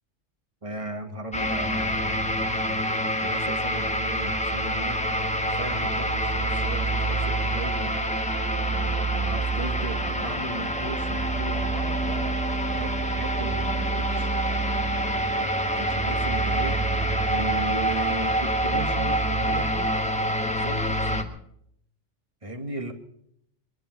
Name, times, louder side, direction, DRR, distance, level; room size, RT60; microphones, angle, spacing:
voice 1, 0.6-5.2 5.6-8.0 8.7-14.3 15.2-17.0 17.3-19.9 20.3-21.4 22.4-22.9, right 2 dB, 25° right, 6 dB, 1.7 m, -37 dB
sound 1, 1.3-21.2, right 1 dB, 5° left, 1.1 m, -26 dB
23.0 x 10.5 x 5.8 m, 0.72 s
omnidirectional pair, 1.3 m